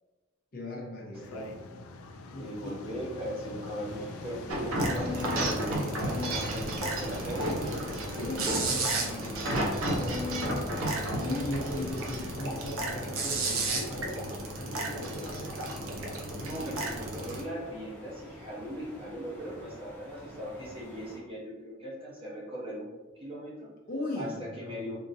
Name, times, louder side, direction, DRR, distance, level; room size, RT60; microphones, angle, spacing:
voice 1, 0.5-1.4 2.3-2.8 8.1-10.1 11.2-14.3 14.5-15.6 23.9-24.9, left 1 dB, 45° left, -2 dB, 0.7 m, -38 dB
sound 1, 1.1-15.8, left 3 dB, 90° left, 0.3 m, -46 dB
voice 2, 1.1-1.7 2.4-5.8 6.0-8.0 16.3-23.7 24.2-25.0, equal, 25° right, -5 dB, 0.8 m, -39 dB
Brean Sands Beach, 3.8-21.2, equal, 10° left, 0.7 m, -48 dB
sound 2, 4.5-17.4, right 1 dB, 85° right, 0.7 m, -32 dB
3.7 x 2.8 x 2.6 m, 1.2 s
head